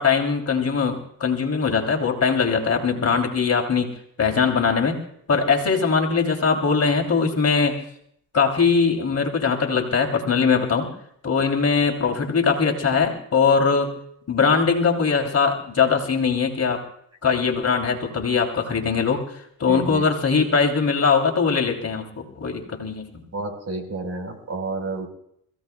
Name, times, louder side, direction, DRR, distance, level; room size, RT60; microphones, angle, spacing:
voice 1, 0.0-3.9 4.2-5.0 5.3-7.8 8.3-10.9 11.2-13.9 14.3-16.8 17.2-23.1, left 5 dB, 35° left, 2 dB, 3.2 m, -21 dB
voice 2, 19.7-20.0 23.3-25.1, right 2 dB, 35° right, 5 dB, 4.6 m, -30 dB
29.5 x 16.5 x 2.3 m, 0.71 s
supercardioid pair, 75°, 45 cm